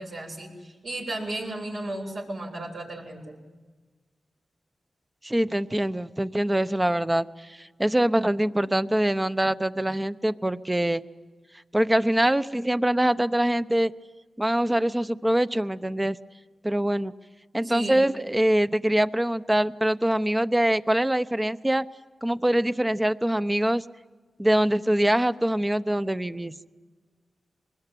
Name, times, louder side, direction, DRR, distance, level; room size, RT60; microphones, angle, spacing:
voice 1, 0.0-3.4 17.6-18.0, right 2 dB, 80° right, -2 dB, 7.7 m, -34 dB
voice 2, 5.2-11.0 11.7-13.9 14.4-16.2 16.6-17.1 17.5-21.9 22.2-23.8 24.4-26.5, right 1 dB, 15° right, 12 dB, 0.9 m, -24 dB
25.0 x 21.0 x 9.2 m, 1.4 s
cardioid pair, 55°, 0 cm